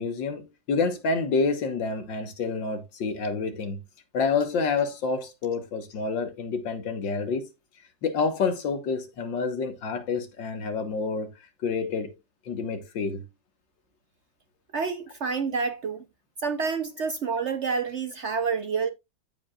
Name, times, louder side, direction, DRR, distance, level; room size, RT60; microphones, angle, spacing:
voice 1, 0.0-3.8 4.1-7.5 8.0-11.3 11.6-12.2 12.5-13.2, left 4 dB, 85° left, 2.0 m, -28 dB
voice 2, 14.7-16.0 16.4-18.9, right 5 dB, 55° right, 0.8 m, -28 dB
15.0 x 5.2 x 2.4 m
omnidirectional pair, 1.9 m